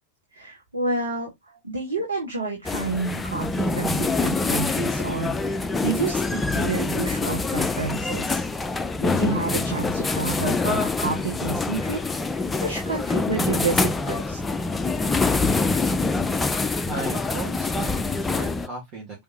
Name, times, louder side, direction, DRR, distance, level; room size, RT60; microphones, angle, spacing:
voice 1, 0.3-1.3 1.6-8.4 9.0-12.0 12.3-14.4, right 3 dB, 75° right, 1.5 m, -29 dB
sound 1, 2.6-18.7, left 3 dB, 10° left, 0.4 m, -25 dB
voice 2, 16.8-19.2, right 2 dB, 35° right, 1.7 m, -36 dB
5.4 x 3.5 x 2.8 m
figure-of-eight pair, 90°, 0 cm